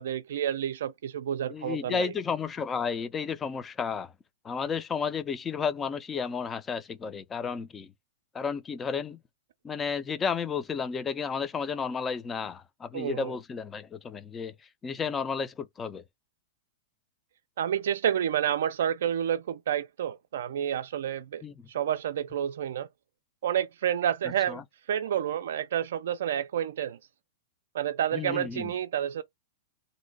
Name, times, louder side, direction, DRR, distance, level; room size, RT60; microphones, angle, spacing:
voice 1, 0.0-2.1 12.9-13.3 17.6-21.4 21.7-22.9 23.4-24.6 24.9-27.0 27.7-29.2, right 10 dB, 75° right, 0.3 m, -29 dB
voice 2, 1.5-4.1 4.4-7.9 8.3-9.2 9.6-14.5 14.8-16.0 21.4-21.7 24.5-24.6 28.1-28.7, left 6 dB, 20° left, 0.4 m, -32 dB
2.6 x 2.1 x 4.0 m
hypercardioid pair, 140°, 0 cm